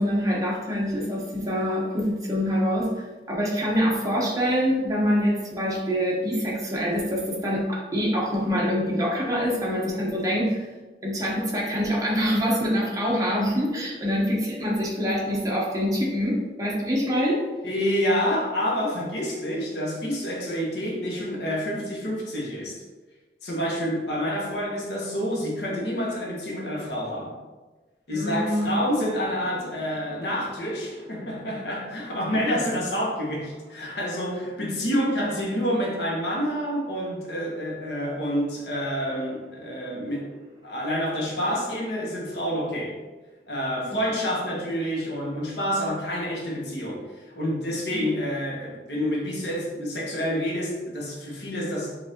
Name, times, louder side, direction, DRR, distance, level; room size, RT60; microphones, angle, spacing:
voice 1, 0.0-2.9 3.3-10.6 11.0-17.4 28.1-28.7 35.1-35.2 47.9-48.0, equal, 20° right, -4 dB, 0.9 m, -25 dB
voice 2, 17.6-22.8 23.4-27.4 28.1-40.3 40.6-43.0 43.5-52.0, equal, 65° left, -3 dB, 1.0 m, -28 dB
5.0 x 2.6 x 2.8 m, 1.2 s
head